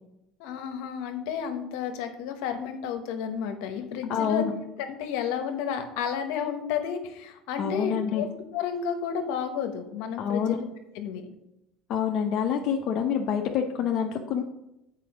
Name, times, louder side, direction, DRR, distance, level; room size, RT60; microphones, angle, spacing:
voice 1, 0.4-4.5 4.8-8.3 8.5-10.7 10.9-11.3, left 7 dB, 75° left, 6 dB, 1.0 m, -31 dB
voice 2, 4.1-4.5 7.6-8.2 10.2-10.6 11.9-14.4, left 8 dB, 55° left, 2 dB, 0.7 m, -27 dB
7.6 x 4.7 x 4.8 m, 0.87 s
supercardioid pair, 95°, 0 cm